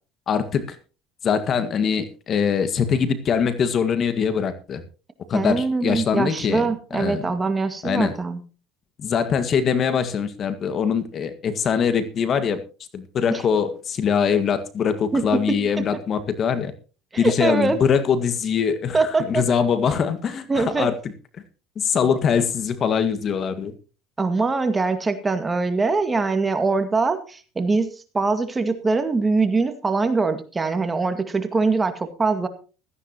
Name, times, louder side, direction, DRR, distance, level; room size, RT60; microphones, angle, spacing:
voice 1, 0.3-0.8 1.2-4.8 5.3-7.3 7.8-8.1 9.0-12.6 12.9-16.7 17.2-20.9 21.8-23.7, left 7 dB, 45° left, 11 dB, 1.8 m, -23 dB
voice 2, 5.3-8.4 13.3-13.4 15.1-15.8 17.1-17.8 18.9-19.4 20.5-20.9 24.2-27.9 28.1-32.5, right 3 dB, 20° right, 9 dB, 2.0 m, -23 dB
17.0 x 13.5 x 3.0 m, 0.34 s
supercardioid pair, 90°, 0 cm